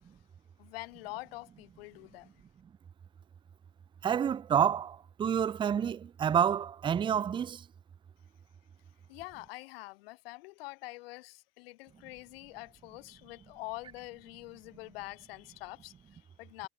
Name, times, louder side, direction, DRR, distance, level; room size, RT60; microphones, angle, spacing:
voice 1, 0.6-2.4 9.1-16.7, left 21 dB, 80° left, 6.9 m, -45 dB
voice 2, 4.0-7.6, right 8 dB, 15° right, 0.4 m, -28 dB
supercardioid pair, 110°, 29 cm